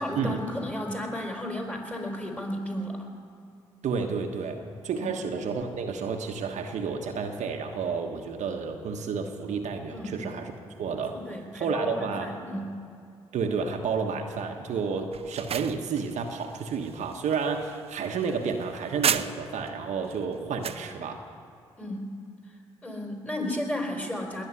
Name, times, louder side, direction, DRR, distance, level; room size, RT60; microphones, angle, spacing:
voice 1, 0.0-3.1 5.0-5.1 9.9-10.2 11.1-12.8 21.8-22.2 22.8-24.5, left 1 dB, 10° left, 2 dB, 4.5 m, -33 dB
voice 2, 3.8-10.5 10.8-11.2 11.5-12.3 13.3-21.2, right 5 dB, 70° right, 3 dB, 1.3 m, -31 dB
sound 1, 15.1-19.7 20.1-20.9, right 8 dB, 50° right, 0.6 m, -33 dB
20.5 x 7.1 x 9.7 m, 2.4 s
hypercardioid pair, 45°, 13 cm